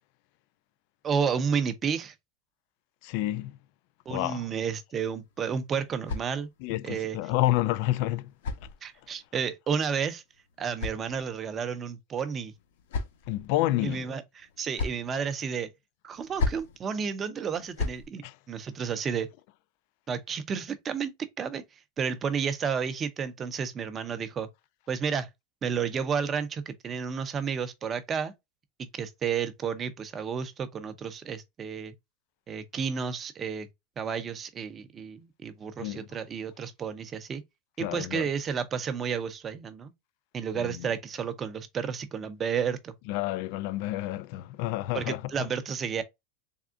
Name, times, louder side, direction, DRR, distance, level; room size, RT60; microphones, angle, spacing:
voice 1, 1.0-2.1 4.1-6.5 6.8-7.2 8.8-10.2 10.6-12.5 13.8-15.7 16.0-19.3 20.1-21.6 22.0-24.5 24.9-25.3 25.6-28.3 28.8-31.9 32.5-33.7 34.0-37.4 37.8-39.9 40.3-42.9 44.9-46.0, right 6 dB, 20° right, 0.6 m, -31 dB
voice 2, 3.0-3.6 4.1-4.5 6.6-8.3 13.3-14.1 18.2-18.4 35.8-36.1 37.8-38.3 40.6-40.9 43.1-45.2, left 16 dB, 50° left, 0.3 m, -29 dB
sound 1, 5.2-6.8 7.8-9.3 10.3-11.6 12.4-13.5 14.4-15.1 16.1-16.8 17.5-18.1, left 3 dB, 80° left, 0.9 m, -36 dB
3.6 x 3.5 x 2.3 m
supercardioid pair, 160°, 0 cm